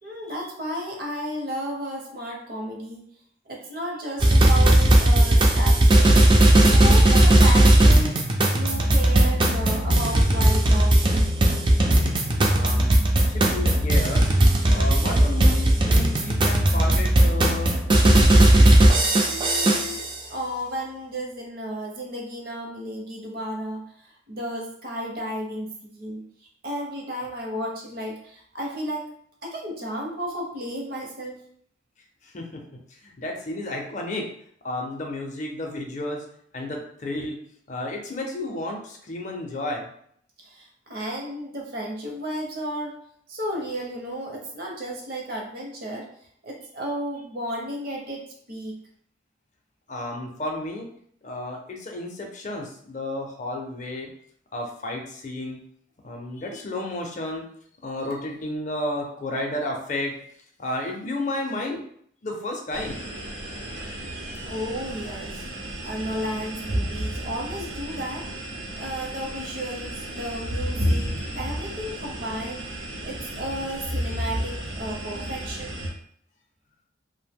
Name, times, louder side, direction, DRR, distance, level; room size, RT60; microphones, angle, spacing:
voice 1, 0.0-3.0 3.4-6.2 6.6-8.2 8.5-11.4 19.2-20.0 20.3-26.2 26.6-29.1 29.4-31.4 40.4-43.0 43.3-46.1 46.4-48.8 64.4-65.4 65.8-68.3 68.8-72.6 73.0-75.8, equal, 50° right, 0 dB, 0.7 m, -33 dB
sound 1, 4.2-20.1, right 1 dB, 25° right, 0.3 m, -17 dB
voice 2, 12.5-13.0 13.3-14.4 14.7-17.7 32.2-32.4 32.9-34.2 34.6-36.2 36.5-37.4 37.7-39.9 49.9-50.9 51.2-54.1 54.5-55.6 56.0-57.5 57.8-60.1 60.6-61.8 62.2-63.0, left 1 dB, 40° left, 1 dB, 0.5 m, -32 dB
sound 2, 62.7-75.9, equal, 85° right, 0.7 m, -32 dB
2.5 x 2.1 x 3.4 m, 0.65 s
head